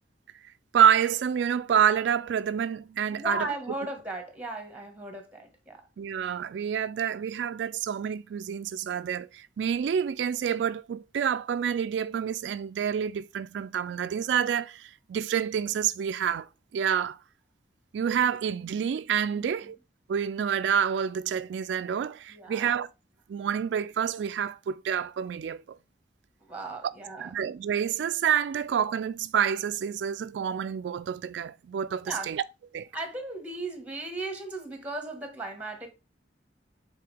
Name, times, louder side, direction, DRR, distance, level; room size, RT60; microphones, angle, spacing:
voice 1, 0.7-3.5 6.0-17.2 17.9-19.8 20.1-22.9 23.3-25.8 27.2-32.4 32.7-32.9, right 8 dB, 75° right, 0.3 m, -28 dB
voice 2, 3.1-5.8 19.3-19.7 22.3-22.7 26.4-27.3 32.0-32.4 32.9-35.9, right 2 dB, 10° right, 1.6 m, -36 dB
7.6 x 4.1 x 3.4 m
head